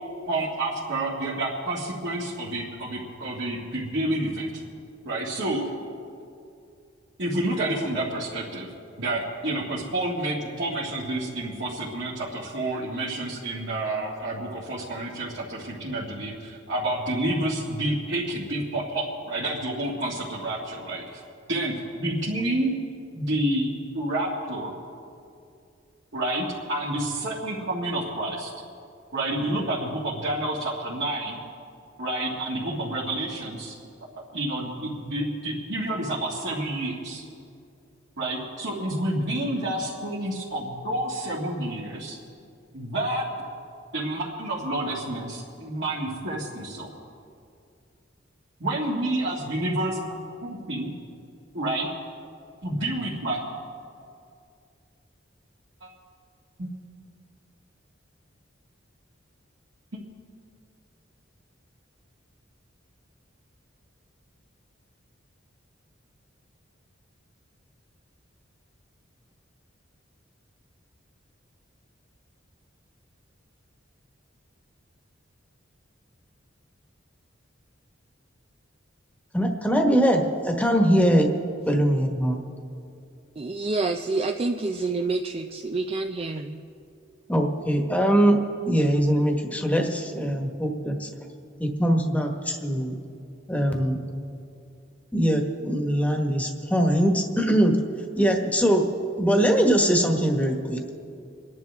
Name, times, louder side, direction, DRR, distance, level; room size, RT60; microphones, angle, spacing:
voice 1, 0.3-4.6 5.0-5.6 7.2-8.7 9.0-21.2 21.5-22.8 23.1-24.7 26.1-28.5 29.1-31.4 32.0-33.8 34.3-37.2 38.2-42.2 42.7-43.2 43.9-46.9 48.6-50.9 51.5-51.9 52.6-53.4 55.8-55.9 56.6-56.7 59.9-60.0, right 1 dB, 65° right, 2.0 m, -29 dB
voice 2, 79.3-81.3 81.7-82.4 87.3-88.4 88.7-91.1 91.6-93.0 93.5-94.0 95.1-97.8 98.2-98.8 99.2-100.9, equal, 10° left, 1.3 m, -22 dB
voice 3, 83.4-86.6, right 3 dB, 30° right, 0.4 m, -28 dB
28.5 x 10.5 x 3.5 m
head